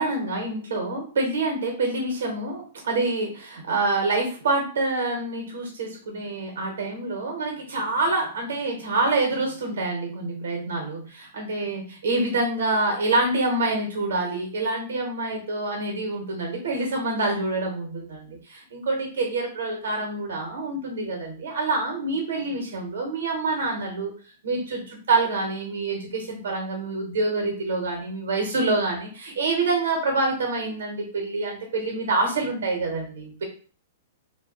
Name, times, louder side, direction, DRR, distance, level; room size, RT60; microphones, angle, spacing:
voice 1, 0.0-24.1 24.4-33.4, right 2 dB, 80° right, 1 dB, 0.8 m, -26 dB
2.4 x 2.2 x 2.4 m, 0.41 s
hypercardioid pair, 140°, 0 cm